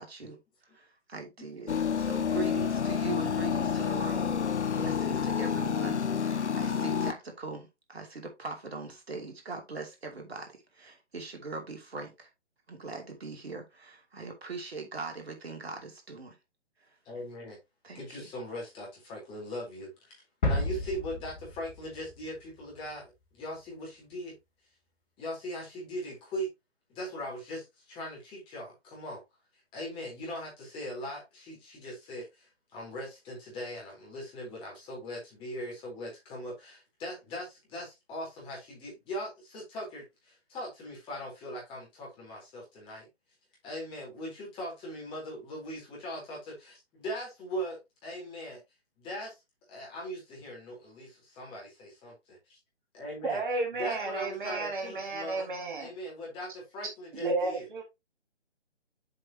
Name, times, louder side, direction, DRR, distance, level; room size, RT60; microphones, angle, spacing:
voice 1, 0.0-12.3 12.7-16.4 16.8-17.0 17.8-18.3, right 4 dB, 60° right, 2.7 m, -41 dB
sound 1, 1.7-7.1, left 7 dB, 75° left, 0.6 m, -29 dB
voice 2, 17.0-17.6 17.9-24.4 25.2-26.5 26.9-29.2 29.7-43.1 43.6-47.8 48.0-48.6 49.0-49.4 49.7-52.6 52.9-53.4 53.7-57.7, equal, 15° left, 4.0 m, -40 dB
sound 2, 20.4-22.4 22.7-22.9, left 1 dB, 45° left, 3.4 m, -32 dB
voice 3, 53.2-55.9 57.1-57.8, right 3 dB, 45° right, 2.1 m, -32 dB
7.8 x 6.2 x 2.9 m
figure-of-eight pair, 140°, 34 cm